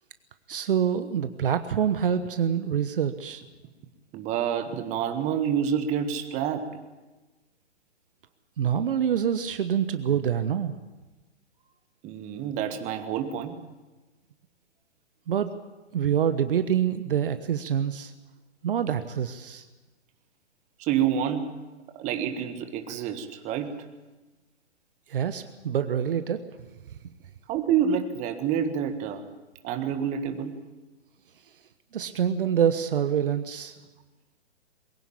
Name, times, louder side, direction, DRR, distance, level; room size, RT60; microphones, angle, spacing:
voice 1, 0.5-3.4 8.6-10.7 15.3-15.5 15.9-18.1 18.6-19.6 25.1-26.4 31.9-33.8, right 8 dB, 50° right, 10 dB, 1.2 m, -26 dB
voice 2, 4.1-6.8 12.0-13.6 20.8-21.6 22.0-23.8 27.5-29.2 29.6-30.6, right 8 dB, 20° right, 8 dB, 1.6 m, -28 dB
22.0 x 16.5 x 8.6 m, 1.2 s
figure-of-eight pair, 130°, 34 cm